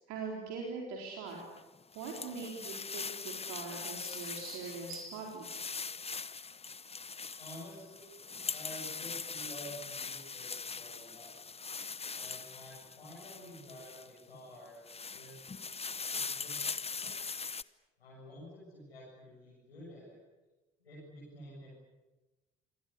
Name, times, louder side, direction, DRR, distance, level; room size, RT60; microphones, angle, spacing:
voice 1, 0.1-1.4 1.9-5.5, right 4 dB, 65° right, -1 dB, 4.4 m, -42 dB
sound 1, 1.4-14.2 14.7-17.6, left 5 dB, 20° left, 0.9 m, -41 dB
voice 2, 7.4-11.3 12.1-14.8 15.1-15.5 16.1-16.6 16.9-17.1 18.0-20.2 20.8-21.7, left 1 dB, 85° left, -8 dB, 7.7 m, -50 dB
27.0 x 22.0 x 8.6 m, 1.1 s
figure-of-eight pair, 50°, 30 cm